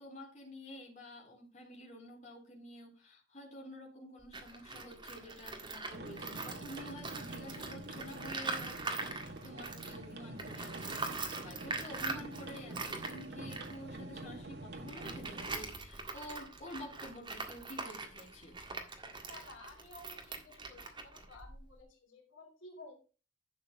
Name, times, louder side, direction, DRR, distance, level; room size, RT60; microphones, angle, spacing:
voice 1, 0.0-18.6, left 1 dB, 35° left, -1 dB, 3.4 m, -50 dB
Tools, 4.2-10.0 10.4-21.8, right 3 dB, 25° right, 1.8 m, -43 dB
sound 1, 5.9-15.5, right 2 dB, 55° right, 1.7 m, -46 dB
voice 2, 19.3-22.9, left 2 dB, 75° left, 1 dB, 3.2 m, -54 dB
11.5 x 7.6 x 3.6 m, 0.34 s
head